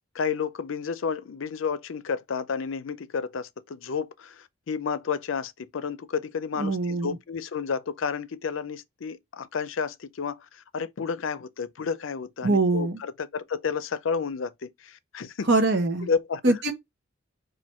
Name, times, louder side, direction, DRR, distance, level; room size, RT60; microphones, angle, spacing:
voice 1, 0.1-15.5 16.1-16.5, left 6 dB, 80° left, 0.5 m, -31 dB
voice 2, 6.6-7.2 12.4-13.0 15.5-16.1 16.4-16.7, right 3 dB, 60° right, 0.9 m, -23 dB
4.4 x 2.6 x 4.2 m
head